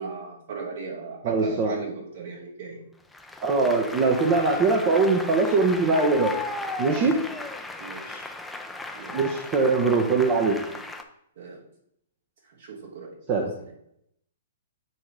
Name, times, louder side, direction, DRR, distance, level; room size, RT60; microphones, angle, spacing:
voice 1, 0.0-2.8 7.1-7.3 7.8-8.3 8.9-9.2 11.4-11.6 12.6-13.2, right 5 dB, 60° right, -2 dB, 2.3 m, -37 dB
voice 2, 1.2-1.8 3.4-6.3 6.8-7.1 9.1-10.5 13.3-13.5, right 3 dB, 35° right, 1 dB, 0.9 m, -22 dB
Applause, 3.1-11.0, left 2 dB, 5° left, 0.6 m, -36 dB
8.9 x 3.0 x 4.9 m, 0.75 s
hypercardioid pair, 125°, 0 cm